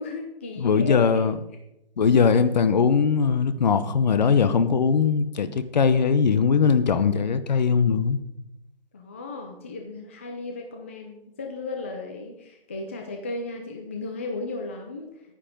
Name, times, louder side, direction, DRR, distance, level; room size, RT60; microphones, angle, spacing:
voice 1, 0.0-1.2 8.9-15.1, left 3 dB, 15° left, 3 dB, 0.5 m, -35 dB
voice 2, 0.6-1.4 2.0-8.2, left 6 dB, 45° left, 12 dB, 1.0 m, -20 dB
10.5 x 9.8 x 5.2 m, 0.84 s
figure-of-eight pair, 145°, 31 cm